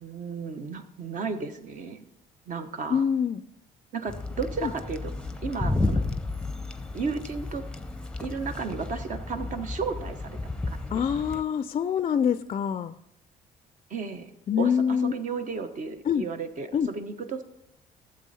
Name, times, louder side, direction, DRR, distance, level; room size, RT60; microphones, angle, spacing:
voice 1, 0.0-2.1 2.5-3.0 3.9-5.1 5.4-6.0 6.9-7.6 8.2-10.8 11.3-11.4 13.9-14.3 14.6-17.4, right 5 dB, 50° right, 8 dB, 1.0 m, -34 dB
voice 2, 2.9-3.4 4.6-4.7 10.9-13.0 14.5-15.1 16.1-16.3 16.7-16.9, left 7 dB, 35° left, 12 dB, 0.4 m, -25 dB
sound 1, 4.1-11.4, left 2 dB, 5° left, 0.7 m, -32 dB
13.0 x 7.7 x 4.1 m, 0.82 s
cardioid pair, 110°, 17 cm